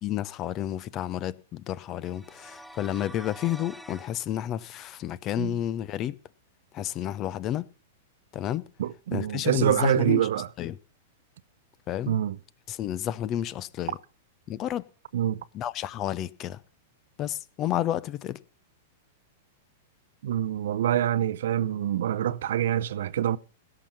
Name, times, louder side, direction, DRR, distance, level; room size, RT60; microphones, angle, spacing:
voice 1, 0.0-6.1 6.7-7.6 8.3-8.6 9.1-10.3 10.6-10.8 11.9-12.2 12.7-14.0 14.5-14.8 15.5-16.6 17.2-18.4, left 12 dB, 35° left, 0.7 m, -31 dB
sound 1, 2.0-4.1, right 1 dB, ahead, 0.7 m, -46 dB
voice 2, 8.8-10.5 12.1-12.4 15.1-15.4 20.2-23.4, right 11 dB, 70° right, 0.7 m, -26 dB
16.5 x 6.0 x 6.9 m
hypercardioid pair, 115°, 0 cm